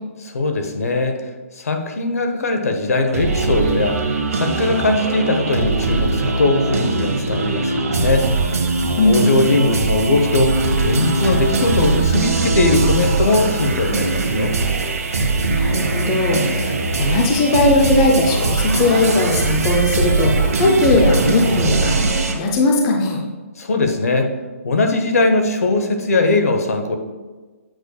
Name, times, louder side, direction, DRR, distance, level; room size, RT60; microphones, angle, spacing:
voice 1, 0.2-1.2 1.5-4.0 4.3-8.3 9.0-14.6 23.6-24.3 24.6-27.0, left 3 dB, 80° left, 5 dB, 1.0 m, -20 dB
sound 1, 3.1-22.3, right 3 dB, 90° right, 1.1 m, -20 dB
Laughter, 14.5-14.6 15.8-16.2 18.5-19.3 19.9-20.7 21.5-21.6, right 3 dB, 30° right, 0.7 m, -36 dB
voice 2, 15.5-23.2, left 2 dB, 15° left, 0 dB, 0.5 m, -18 dB
7.8 x 6.4 x 2.3 m, 1.3 s
hypercardioid pair, 170°, 8 cm